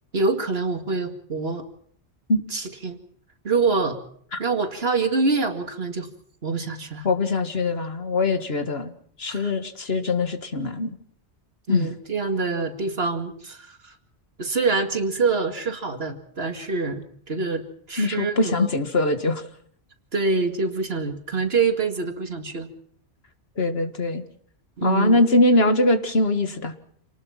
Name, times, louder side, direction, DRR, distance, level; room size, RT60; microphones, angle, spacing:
voice 1, 0.1-1.6 2.5-3.0 3.4-4.0 4.4-6.1 6.4-7.1 9.3-9.5 11.7-13.9 14.4-18.7 20.1-22.7 24.8-25.2, right 4 dB, 65° right, 7 dB, 2.4 m, -25 dB
voice 2, 7.0-8.9 9.2-10.9 11.7-11.9 18.0-19.4 23.6-24.2 24.8-26.7, left 2 dB, 65° left, 9 dB, 2.0 m, -22 dB
28.0 x 19.0 x 5.8 m, 0.62 s
omnidirectional pair, 1.1 m